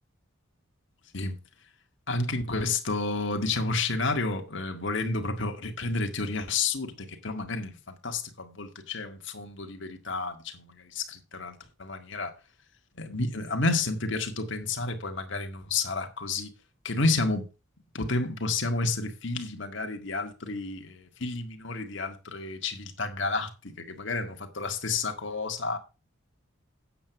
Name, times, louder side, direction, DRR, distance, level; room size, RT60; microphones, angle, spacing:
voice 1, 2.1-12.3 13.0-16.5 16.8-17.5 17.9-25.8, left 3 dB, 60° left, 1.8 m, -31 dB
8.8 x 7.2 x 5.9 m
head